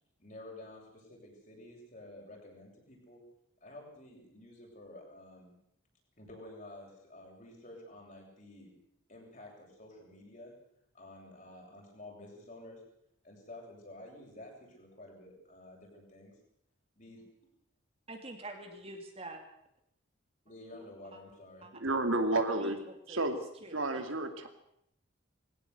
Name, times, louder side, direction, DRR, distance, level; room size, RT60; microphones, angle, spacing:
voice 1, 0.2-3.2 3.6-5.5 6.2-8.8 9.1-10.5 10.9-12.8 13.2-16.3 17.0-17.2 20.4-21.7, left 1 dB, 40° left, -1 dB, 7.9 m, -51 dB
voice 2, 18.1-19.4 21.1-21.2 21.6-21.7 22.3-23.2 23.6-24.0, right 2 dB, 30° right, 4 dB, 2.7 m, -46 dB
voice 3, 21.8-22.8 23.1-23.4 23.7-24.5, right 2 dB, 75° right, 6 dB, 2.7 m, -30 dB
21.5 x 17.5 x 8.2 m, 0.74 s
head